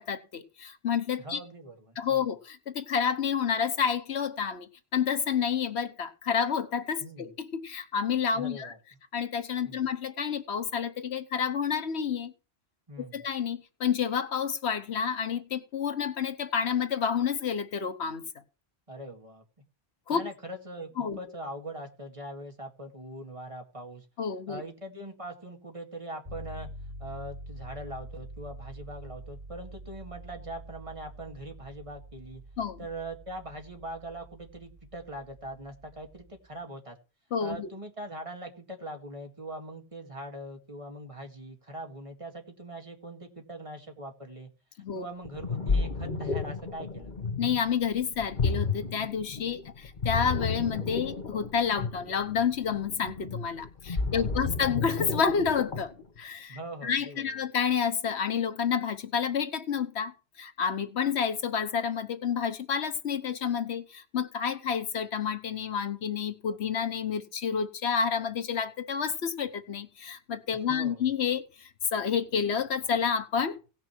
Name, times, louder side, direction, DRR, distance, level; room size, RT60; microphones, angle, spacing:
voice 1, 0.0-1.4 2.0-8.7 9.1-12.3 13.0-18.2 20.1-20.2 21.0-21.2 24.2-24.6 32.6-32.8 37.3-37.7 44.8-45.0 47.4-73.6, left 7 dB, 80° left, 1.3 m, -29 dB
voice 2, 1.2-2.3 7.0-7.3 8.3-8.8 9.6-9.8 12.9-13.2 18.9-19.4 20.1-24.1 24.5-26.7 27.0-32.4 32.8-37.0 37.4-44.5 44.9-47.1 53.9-54.5 56.5-57.4 70.7-71.1, right 1 dB, 30° right, 2.1 m, -42 dB
sound 1, 26.2-36.4, right 1 dB, 75° right, 3.0 m, -46 dB
Ocean, 45.2-56.0, left 4 dB, 45° left, 1.5 m, -32 dB
17.5 x 5.9 x 4.5 m
omnidirectional pair, 1.1 m